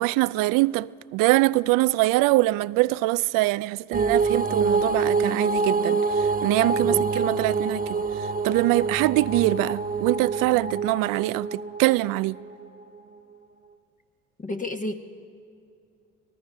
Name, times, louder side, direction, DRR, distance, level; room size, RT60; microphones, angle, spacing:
voice 1, 0.0-7.8 8.4-12.4, right 19 dB, 70° right, 0.5 m, -23 dB
sound 1, 3.9-12.6, right 4 dB, 25° right, 1.4 m, -26 dB
voice 2, 14.4-14.9, left 2 dB, 25° left, 1.1 m, -31 dB
26.5 x 19.0 x 5.5 m
supercardioid pair, 70°, 34 cm